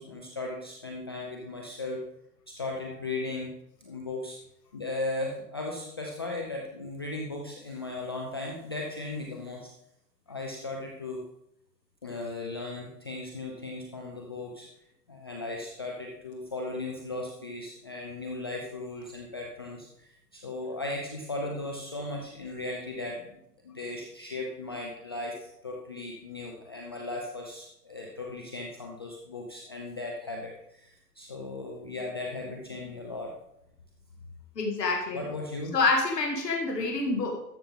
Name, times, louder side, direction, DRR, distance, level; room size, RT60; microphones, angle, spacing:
voice 1, 0.0-2.0 2.5-3.5 3.8-4.4 4.7-9.7 10.3-11.2 12.0-14.7 15.1-33.3 35.1-35.7, left 2 dB, 20° left, -1 dB, 0.3 m, -37 dB
voice 2, 34.6-35.2 35.7-37.6, left 3 dB, 80° left, 1 dB, 2.2 m, -27 dB
13.0 x 6.4 x 3.6 m, 0.77 s
hypercardioid pair, 130°, 48 cm